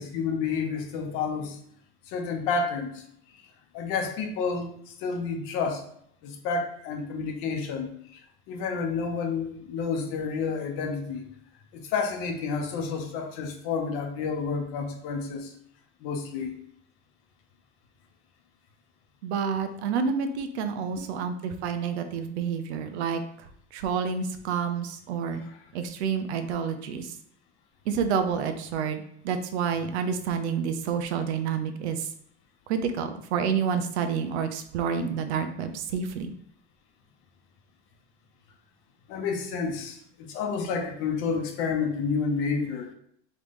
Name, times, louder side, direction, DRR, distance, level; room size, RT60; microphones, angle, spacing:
voice 1, 0.0-1.6 2.1-3.0 3.7-5.8 6.2-8.2 8.5-11.2 11.7-15.5 16.0-16.5 21.0-21.3 25.4-25.6 39.1-40.0 40.3-42.9, left 5 dB, 40° left, 4 dB, 0.8 m, -30 dB
voice 2, 19.2-23.2 23.7-25.4 25.7-27.1 27.9-32.0 32.7-36.3, right 6 dB, 85° right, 8 dB, 0.7 m, -29 dB
3.8 x 3.2 x 3.6 m, 0.68 s
supercardioid pair, 165°, 32 cm